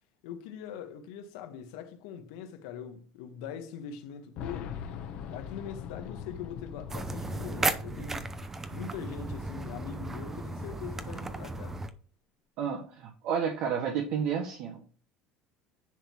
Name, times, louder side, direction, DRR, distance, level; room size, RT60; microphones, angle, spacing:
voice 1, 0.2-4.8 5.3-8.4 8.7-11.8, left 8 dB, 90° left, 1.4 m, -42 dB
Boom, 4.4-9.1 9.4-9.5 10.6-10.7, left 7 dB, 60° left, 1.1 m, -42 dB
sound 1, 6.9-11.9, right 2 dB, 15° right, 0.7 m, -35 dB
voice 2, 12.6-14.8, right 7 dB, 60° right, 1.3 m, -31 dB
10.0 x 3.7 x 4.5 m
cardioid pair, 130°, 2 cm